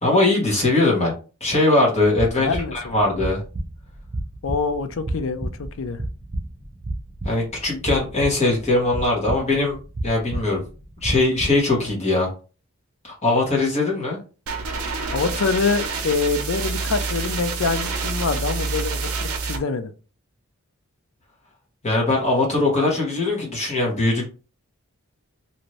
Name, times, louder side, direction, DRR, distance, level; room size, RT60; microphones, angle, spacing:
voice 1, 0.0-1.1 1.4-3.4 7.2-9.8 10.0-10.6 11.0-12.3 13.0-14.2 21.8-24.3, left 2 dB, 30° left, 1.2 m, -21 dB
sound 1, 2.2-11.8, right 1 dB, 35° right, 0.6 m, -32 dB
voice 2, 2.4-3.0 4.4-6.0 15.1-19.9, left 4 dB, 65° left, 0.4 m, -25 dB
sound 2, 14.5-19.6, right 4 dB, 80° right, 0.6 m, -27 dB
2.7 x 2.5 x 3.1 m
head